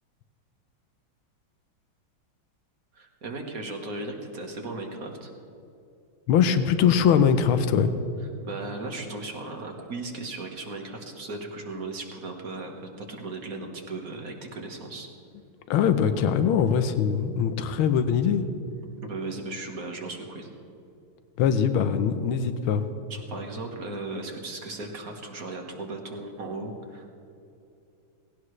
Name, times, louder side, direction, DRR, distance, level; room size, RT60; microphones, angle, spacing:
voice 1, 2.9-5.3 8.4-15.1 19.0-20.5 23.1-27.2, right 2 dB, 45° right, 2 dB, 1.8 m, -36 dB
voice 2, 6.3-7.9 15.7-18.4 21.4-22.8, left 7 dB, 85° left, 10 dB, 1.6 m, -22 dB
18.5 x 17.0 x 3.2 m, 2.7 s
omnidirectional pair, 2.2 m